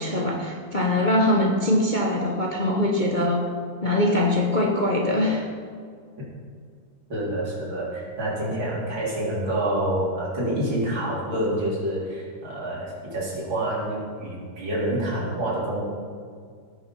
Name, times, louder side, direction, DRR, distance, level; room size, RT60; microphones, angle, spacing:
voice 1, 0.0-3.5 3.8-5.5, left 1 dB, 30° left, -1 dB, 0.9 m, -22 dB
voice 2, 7.1-15.9, right 1 dB, 75° right, -6 dB, 4.4 m, -27 dB
18.0 x 6.6 x 5.5 m, 2.1 s
omnidirectional pair, 2.1 m